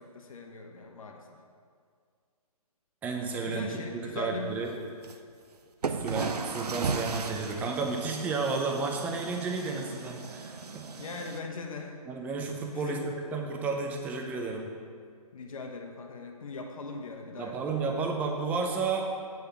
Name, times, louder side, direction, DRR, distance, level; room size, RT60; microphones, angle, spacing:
voice 1, 0.0-1.4 3.5-4.5 11.0-12.0 12.7-13.0 15.3-18.0, left 4 dB, 60° left, 2 dB, 1.0 m, -40 dB
voice 2, 3.0-4.7 5.9-10.9 12.1-14.7 17.4-19.0, right 4 dB, 10° right, 2 dB, 0.5 m, -32 dB
sound 1, 5.0-5.2 5.8-11.4, right 4 dB, 90° right, 0.7 m, -36 dB
8.0 x 5.0 x 7.0 m, 2.1 s
hypercardioid pair, 145°, 20 cm